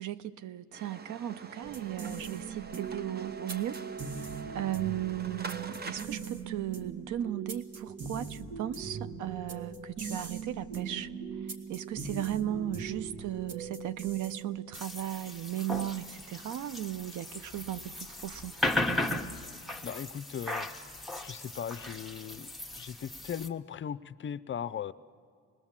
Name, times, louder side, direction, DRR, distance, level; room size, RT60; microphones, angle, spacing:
voice 1, 0.0-4.3 4.5-11.1 11.4-18.5, right 12 dB, 80° right, 15 dB, 0.7 m, -36 dB
sound 1, 0.7-6.1, right 4 dB, 30° right, 0.8 m, -44 dB
sound 2, 1.6-15.1, right 5 dB, 55° right, 2.1 m, -40 dB
sound 3, 14.7-23.5, left 2 dB, ahead, 1.2 m, -36 dB
voice 2, 19.8-20.7 21.2-22.5 22.8-24.9, left 8 dB, 40° left, 17 dB, 0.6 m, -38 dB
25.5 x 20.5 x 7.4 m, 2.2 s
cardioid pair, 90°, 30 cm